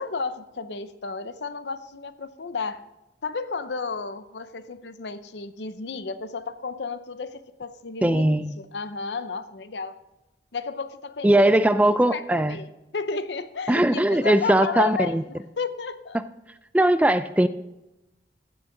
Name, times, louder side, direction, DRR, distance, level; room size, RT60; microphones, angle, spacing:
voice 1, 0.0-2.8 3.2-10.0 10.5-16.2, left 4 dB, 70° left, 12 dB, 0.7 m, -33 dB
voice 2, 8.0-8.5 11.2-12.6 13.7-15.2 16.7-17.5, right 1 dB, 10° right, 12 dB, 0.4 m, -20 dB
15.0 x 6.3 x 3.8 m, 0.98 s
head